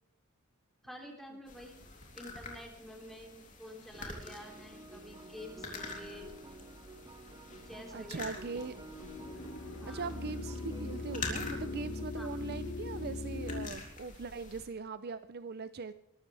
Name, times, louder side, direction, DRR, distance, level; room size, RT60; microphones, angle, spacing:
voice 1, 0.8-1.8 2.1-6.3 7.6-8.6 9.8-10.1 12.1-12.3, left 1 dB, ahead, 1 dB, 3.1 m, -49 dB
sound 1, 1.5-14.7, left 3 dB, 40° left, 3.3 m, -47 dB
sound 2, 3.9-12.0, right 2 dB, 20° right, 1.2 m, -51 dB
voice 2, 7.9-8.7 9.9-15.9, right 4 dB, 50° right, 12 dB, 0.6 m, -41 dB
sound 3, 8.9-13.7, left 3 dB, 65° left, 2.5 m, -40 dB
22.5 x 13.0 x 3.4 m, 0.79 s
head